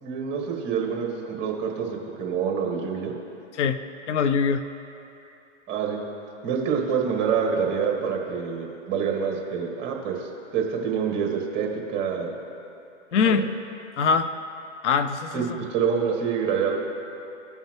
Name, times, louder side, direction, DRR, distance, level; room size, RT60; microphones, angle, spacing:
voice 1, 0.0-3.1 5.7-6.0 6.4-12.3 15.3-15.4 15.7-16.8, right 6 dB, 30° right, 0 dB, 1.5 m, -26 dB
voice 2, 4.1-4.6 13.1-13.4 14.0-14.3 14.8-15.5, left 5 dB, 70° left, 11 dB, 0.6 m, -22 dB
15.5 x 5.6 x 3.0 m, 2.8 s
hypercardioid pair, 130°, 36 cm